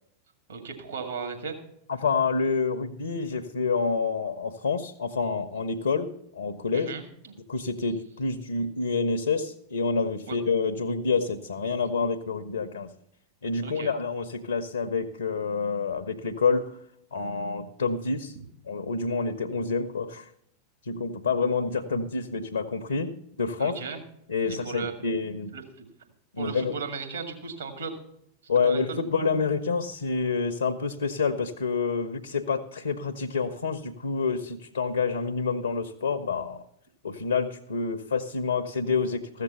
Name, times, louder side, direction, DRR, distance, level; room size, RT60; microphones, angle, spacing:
voice 1, 0.5-1.6 6.7-7.3 10.3-10.4 13.6-13.9 23.6-24.0 24.5-24.9 25.5-25.9 26.4-28.0 28.6-29.0, right 5 dB, 70° right, 5 dB, 2.1 m, -36 dB
voice 2, 1.9-6.9 7.5-12.9 13.4-16.8 17.1-18.4 18.7-20.3 20.8-23.1 23.4-23.7 24.3-25.5 26.3-26.7 28.5-36.6 37.0-39.4, left 4 dB, 75° left, 6 dB, 0.7 m, -28 dB
14.5 x 6.7 x 6.9 m, 0.74 s
figure-of-eight pair, 90°, 0 cm